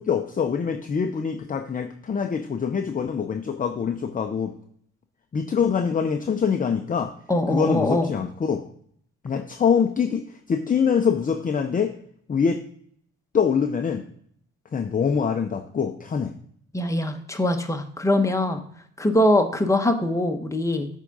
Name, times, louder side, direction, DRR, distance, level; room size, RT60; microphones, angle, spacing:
voice 1, 0.0-4.5 5.3-7.1 7.5-8.7 9.2-11.9 12.3-12.6 13.3-14.0 14.7-16.3, left 6 dB, 25° left, 5 dB, 0.6 m, -24 dB
voice 2, 7.3-8.1 16.7-18.6 19.0-20.9, left 1 dB, 10° left, 5 dB, 1.0 m, -22 dB
8.2 x 3.7 x 5.3 m, 0.63 s
cardioid pair, 90°, 30 cm